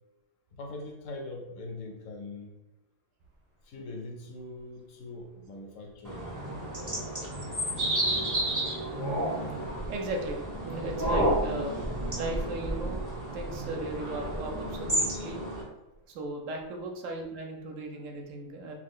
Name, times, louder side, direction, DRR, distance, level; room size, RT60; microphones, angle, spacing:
voice 1, 0.6-2.5 3.7-6.3, left 2 dB, 75° left, 2 dB, 1.0 m, -42 dB
sound 1, 3.3-3.4 7.0-7.1 8.1-8.7 9.0-15.5 15.9-16.0 16.6-16.7, right 1 dB, 45° right, 0.8 m, -39 dB
sound 2, 6.0-15.6, right 1 dB, 30° right, 0.3 m, -31 dB
voice 2, 9.9-11.8 12.2-13.0 13.3-15.4 16.1-18.7, right 2 dB, 70° right, 2 dB, 0.9 m, -37 dB
2.4 x 2.3 x 3.6 m, 1.0 s
omnidirectional pair, 1.4 m